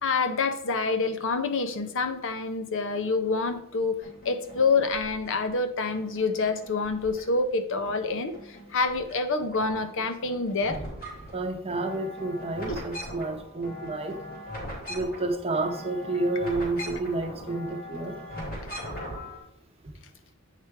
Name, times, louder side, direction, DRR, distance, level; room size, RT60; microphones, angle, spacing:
voice 1, 0.0-10.8, left 4 dB, 60° left, 9 dB, 0.7 m, -27 dB
sound 1, 4.0-5.5 5.9-7.5 7.9-9.2 9.4-19.4, equal, 40° left, 3.2 m, -40 dB
voice 2, 11.3-14.2 14.9-18.2 19.8-19.9, right 2 dB, 25° right, 4 dB, 0.9 m, -30 dB
8.3 x 5.1 x 4.6 m, 0.73 s
head